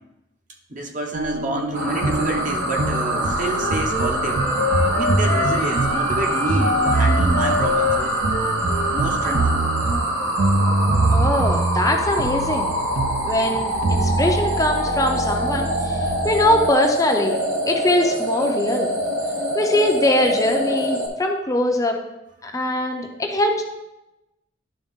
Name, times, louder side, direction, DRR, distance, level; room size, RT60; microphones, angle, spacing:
voice 1, 0.7-4.5 4.9-8.1 8.9-9.5, right 1 dB, 45° right, 1 dB, 1.0 m, -28 dB
sound 1, 1.1-16.7, right 2 dB, 65° right, 0.6 m, -25 dB
sound 2, 1.7-21.1, right 1 dB, 80° right, 1.3 m, -25 dB
Wind instrument woodwind instrument, 3.5-9.0, left 4 dB, 75° left, 1.3 m, -26 dB
voice 2, 11.1-12.7 13.3-16.0 16.2-17.4 17.7-18.9 19.5-22.0 22.4-23.6, left 1 dB, 20° left, 2 dB, 0.6 m, -21 dB
11.0 x 3.7 x 3.6 m, 0.94 s
head